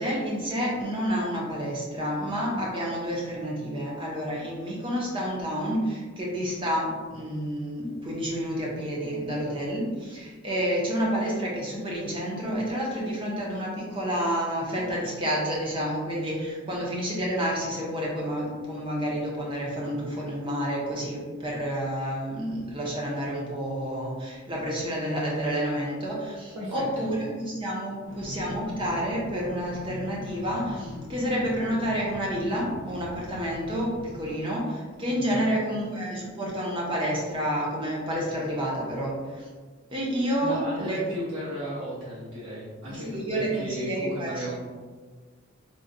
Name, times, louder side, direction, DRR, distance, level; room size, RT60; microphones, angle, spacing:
voice 1, 0.0-39.5 39.9-41.0 42.9-44.6, equal, 25° right, -4 dB, 0.6 m, -29 dB
voice 2, 26.5-27.1 35.0-35.5 40.4-44.6, equal, 80° right, -8 dB, 1.0 m, -35 dB
sound 1, 28.1-34.4, left 1 dB, 75° left, 0.5 m, -41 dB
3.7 x 2.2 x 2.5 m, 1.5 s
head